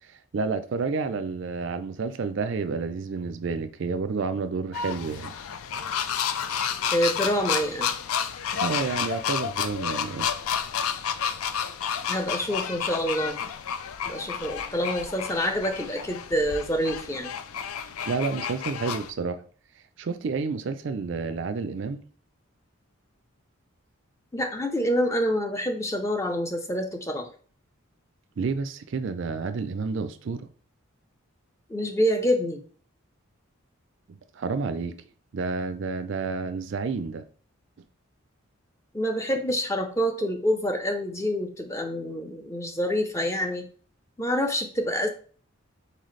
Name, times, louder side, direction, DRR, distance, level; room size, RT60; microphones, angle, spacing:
voice 1, 0.0-5.3 8.5-10.3 18.1-19.4 20.0-22.0 28.4-30.5 34.1-34.9 35.3-37.2, right 4 dB, 55° right, 0.4 m, -30 dB
sound 1, 4.7-19.1, left 8 dB, 85° left, 0.4 m, -31 dB
voice 2, 6.9-7.9 12.1-13.4 14.1-17.3 24.3-27.3 31.7-32.6 38.9-43.7 44.2-45.1, equal, 15° left, 0.5 m, -27 dB
4.1 x 4.0 x 3.2 m
head